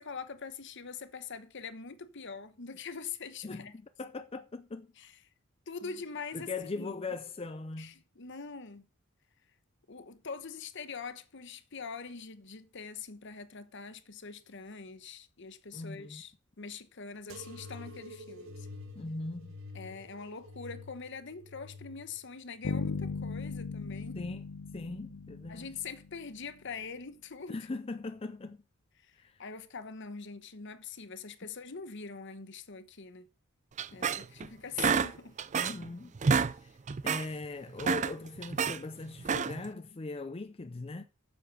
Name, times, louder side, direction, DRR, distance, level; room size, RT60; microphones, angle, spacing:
voice 1, 0.0-3.7 5.0-5.1 5.7-6.9 7.8-8.9 9.9-16.3 16.6-18.7 19.7-24.2 25.5-27.7 29.0-33.3 33.9-35.4, left 5 dB, 60° left, 1.0 m, -43 dB
voice 2, 3.4-4.9 5.8-5.9 6.3-8.0 15.7-16.2 19.0-19.6 24.1-24.4 24.7-25.7 27.5-28.6 29.2-29.4 33.9-34.0 34.4-34.6 35.5-36.1 36.6-36.8 37.0-41.0, left 3 dB, 25° left, 0.5 m, -40 dB
sound 1, 17.3-24.5 25.0-25.8 26.6-27.1 28.1-28.2, left 2 dB, 75° right, 2.0 m, -50 dB
Bass guitar, 22.6-26.4, left 4 dB, 80° left, 0.6 m, -38 dB
sound 2, 33.8-34.5 34.8-35.9 36.1-36.5 36.9-37.3 37.7-38.8 39.2-39.7, right 5 dB, 35° right, 0.4 m, -29 dB
8.0 x 7.1 x 6.1 m
head